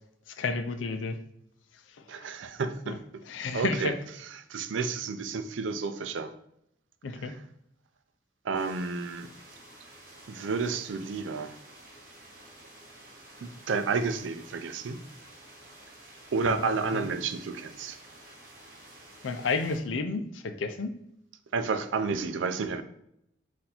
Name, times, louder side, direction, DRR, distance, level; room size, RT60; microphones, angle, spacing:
voice 1, 0.3-1.2 2.0-2.1 2.9-3.0 3.3-3.9 7.0-7.3 16.4-17.1 19.2-20.9, left 4 dB, 90° left, 8 dB, 0.5 m, -32 dB
voice 2, 2.1-3.2 3.5-6.3 7.2-7.4 8.4-9.3 10.3-11.5 13.4-15.0 16.3-18.0 21.5-22.8, right 4 dB, 85° right, 9 dB, 0.4 m, -31 dB
sound 1, 8.5-19.8, right 1 dB, 45° right, 1.1 m, -51 dB
4.2 x 2.6 x 4.2 m, 0.77 s
head